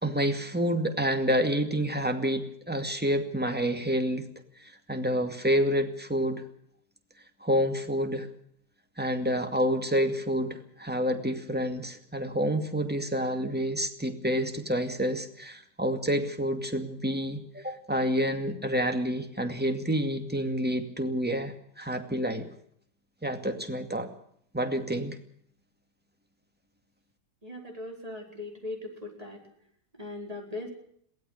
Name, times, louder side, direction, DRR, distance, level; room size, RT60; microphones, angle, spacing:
voice 1, 0.0-4.3 4.6-6.4 7.4-8.3 9.0-22.5 23.2-24.1 24.5-25.2, equal, 5° right, 6 dB, 2.2 m, -28 dB
voice 2, 27.4-29.4 30.0-30.7, left 2 dB, 20° right, 2 dB, 5.1 m, -39 dB
23.0 x 17.5 x 6.6 m, 0.67 s
omnidirectional pair, 1.8 m